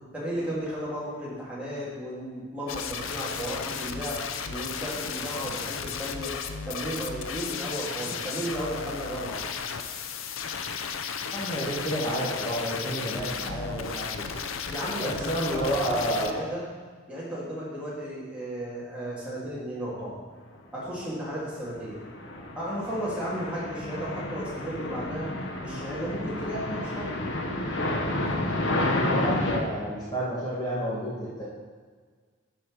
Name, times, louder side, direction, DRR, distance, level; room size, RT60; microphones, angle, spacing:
voice 1, 0.1-4.2 4.5-6.3 6.7-9.4 14.7-16.6 17.1-20.1 20.7-22.0 22.5-25.3 25.6-27.3, equal, 5° right, -8 dB, 2.2 m, -34 dB
sound 1, 2.7-16.3, left 6 dB, 90° left, 0.6 m, -34 dB
voice 2, 11.3-14.2 15.0-16.4 28.7-31.4, right 1 dB, 20° left, -8 dB, 1.6 m, -30 dB
sound 2, 21.8-29.6, left 1 dB, 70° left, 1.0 m, -30 dB
11.0 x 4.6 x 4.7 m, 1.6 s
head